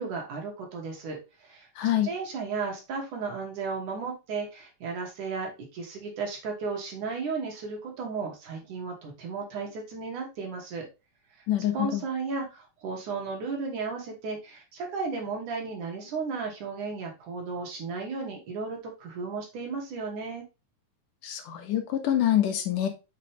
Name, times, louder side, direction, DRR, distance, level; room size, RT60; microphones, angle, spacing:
voice 1, 0.0-1.7 2.0-10.9 11.7-20.4, right 4 dB, 75° right, 1 dB, 4.0 m, -34 dB
voice 2, 1.8-2.1 11.5-12.0 21.2-22.9, left 11 dB, 90° left, 6 dB, 3.1 m, -26 dB
7.5 x 5.6 x 3.4 m, 0.27 s
omnidirectional pair, 3.6 m